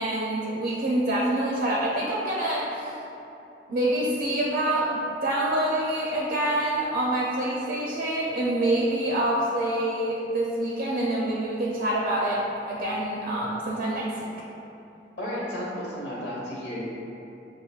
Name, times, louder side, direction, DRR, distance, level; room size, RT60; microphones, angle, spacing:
voice 1, 0.0-2.9 3.7-14.3, right 1 dB, 50° right, -4 dB, 0.5 m, -26 dB
voice 2, 15.2-16.8, equal, 65° left, -7 dB, 1.2 m, -33 dB
6.6 x 2.5 x 2.3 m, 2.9 s
head